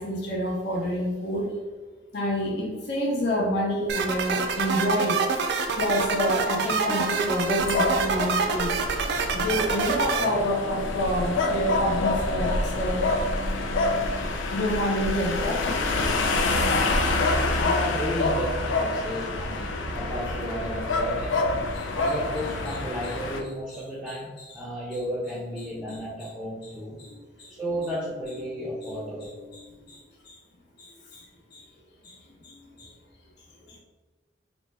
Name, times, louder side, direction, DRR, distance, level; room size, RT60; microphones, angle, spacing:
voice 1, 0.0-1.5 2.1-5.5 5.7-8.7 9.3-13.0 14.5-15.7 16.3-16.6 17.3-17.5 20.3-20.4 21.7-22.1 22.7-22.8 23.0-23.1 23.7-24.6 25.6-26.0 26.6-26.7 27.0-27.5 28.7-30.0 30.2-30.3 30.8-31.3 31.5-31.6 32.0-32.9 33.7-33.8, equal, 60° left, -4 dB, 0.8 m, -29 dB
sound 1, 3.9-10.3, right 5 dB, 65° right, 0.4 m, -26 dB
sound 2, 7.6-23.4, left 2 dB, 90° left, 0.4 m, -27 dB
voice 2, 17.5-21.4 21.9-27.0 27.6-29.3, equal, 5° right, -6 dB, 0.5 m, -33 dB
3.3 x 2.1 x 3.2 m, 1.4 s
head